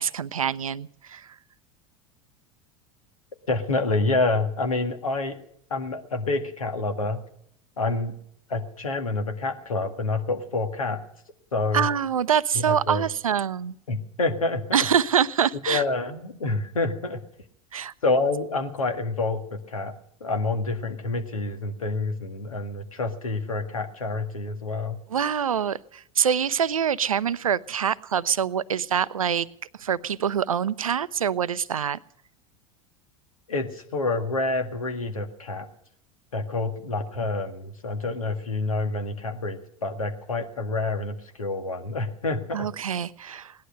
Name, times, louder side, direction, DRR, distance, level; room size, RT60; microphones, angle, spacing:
voice 1, 0.0-1.3 11.7-13.7 14.7-15.8 17.7-17.9 25.1-29.5 29.8-32.0 42.5-43.5, right 8 dB, 80° right, 19 dB, 0.6 m, -25 dB
voice 2, 3.5-5.4 5.7-7.2 7.8-8.2 8.5-11.0 11.5-11.9 12.6-13.1 13.9-14.6 15.7-17.2 18.0-19.9 20.2-25.0 33.5-35.7 36.3-42.7, left 3 dB, 80° left, 6 dB, 1.9 m, -27 dB
18.0 x 11.5 x 6.6 m, 0.68 s
figure-of-eight pair, 80°, 18 cm